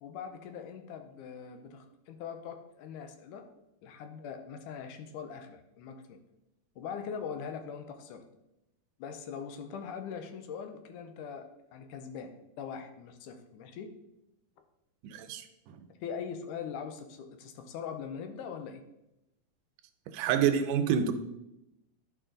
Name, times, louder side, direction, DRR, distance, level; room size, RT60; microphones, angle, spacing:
voice 1, 0.0-3.5 3.8-6.2 6.8-8.2 9.0-12.3 12.6-13.9 16.0-18.8, left 7 dB, 80° left, 6 dB, 2.2 m, -41 dB
voice 2, 15.1-15.4 20.1-21.1, right 8 dB, 80° right, 8 dB, 2.1 m, -27 dB
10.5 x 5.2 x 3.8 m, 0.89 s
omnidirectional pair, 3.7 m